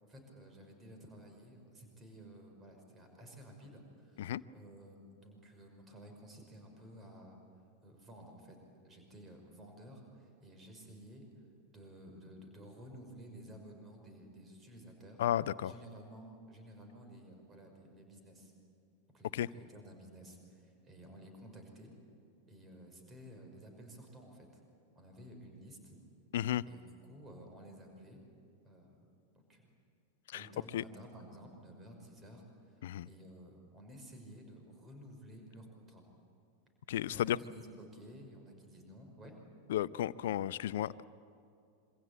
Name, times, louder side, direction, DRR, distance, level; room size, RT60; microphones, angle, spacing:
voice 1, 0.0-7.4 7.8-8.6 8.8-11.3 11.7-15.2 15.6-18.5 19.1-21.9 22.5-24.6 25.0-26.0 26.7-28.2 28.6-28.9 29.3-29.6 30.3-36.0 37.1-39.4, right 1 dB, 20° right, 4 dB, 5.7 m, -53 dB
voice 2, 15.2-15.7 19.3-19.5 26.3-26.6 30.3-30.5 30.7-30.8 32.8-33.1 36.9-37.4 39.7-41.0, left 12 dB, 55° left, 19 dB, 0.6 m, -33 dB
27.0 x 25.0 x 8.8 m, 2.4 s
figure-of-eight pair, 90°, 0 cm